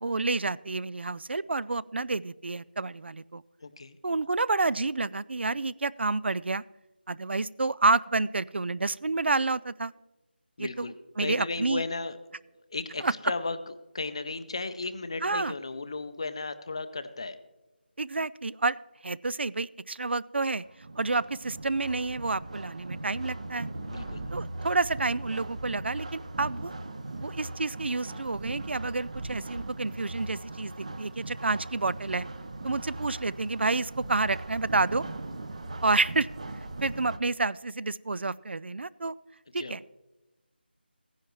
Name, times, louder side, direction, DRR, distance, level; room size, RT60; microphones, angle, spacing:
voice 1, 0.0-3.4 4.0-6.6 7.1-9.9 10.6-11.8 13.0-13.1 15.2-15.5 18.0-18.8 19.0-20.7 21.0-23.7 24.3-26.7 27.2-32.3 32.6-35.0 35.8-36.3 36.8-39.1 39.5-39.9, right 3 dB, 80° right, 20 dB, 0.3 m, -29 dB
voice 2, 3.6-4.0 10.6-12.2 12.7-13.6 13.9-17.4 23.8-24.2 39.6-39.8, left 3 dB, 30° left, 11 dB, 0.5 m, -35 dB
sound 1, 20.5-37.2, right 2 dB, 40° right, 0.7 m, -39 dB
16.0 x 10.0 x 3.1 m, 1.0 s
figure-of-eight pair, 175°, 6 cm